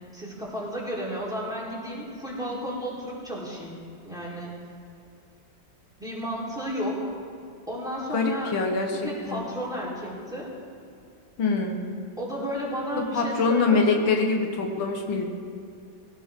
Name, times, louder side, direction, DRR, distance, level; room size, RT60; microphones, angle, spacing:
voice 1, 0.1-4.5 6.0-7.0 7.7-8.5 9.0-10.5 12.2-14.1, equal, ahead, -6 dB, 4.0 m, -33 dB
voice 2, 8.1-9.4 11.4-11.8 13.1-15.2, left 4 dB, 85° left, 2 dB, 2.2 m, -24 dB
20.5 x 18.0 x 3.8 m, 2.4 s
omnidirectional pair, 2.1 m